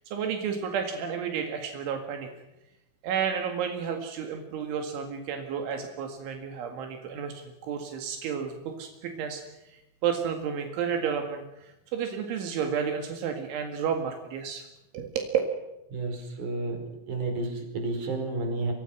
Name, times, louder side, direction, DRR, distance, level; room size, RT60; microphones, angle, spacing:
voice 1, 0.1-2.3 3.0-9.4 9.7-14.7 14.9-15.4, right 7 dB, 80° right, 5 dB, 4.5 m, -31 dB
voice 2, 15.9-18.7, right 3 dB, 40° right, 4 dB, 6.1 m, -31 dB
28.5 x 24.0 x 6.2 m, 0.92 s
omnidirectional pair, 5.4 m